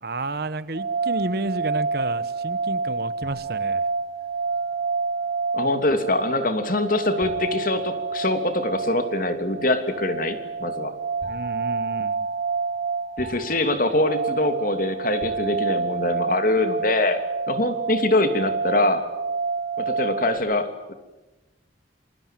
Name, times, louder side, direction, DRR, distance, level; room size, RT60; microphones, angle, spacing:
voice 1, 0.0-3.8 11.3-12.3, right 2 dB, 55° right, 15 dB, 1.2 m, -31 dB
sound 1, 0.7-20.4, right 4 dB, 85° right, 6.2 m, -28 dB
sound 2, 3.2-4.4 7.2-8.8 11.2-14.8 15.2-16.1, right 4 dB, 85° left, 5.7 m, -41 dB
voice 2, 5.5-10.9 13.2-17.2 17.5-19.0 19.8-20.9, left 2 dB, 50° left, 8 dB, 3.0 m, -23 dB
28.0 x 24.5 x 7.6 m, 1.1 s
head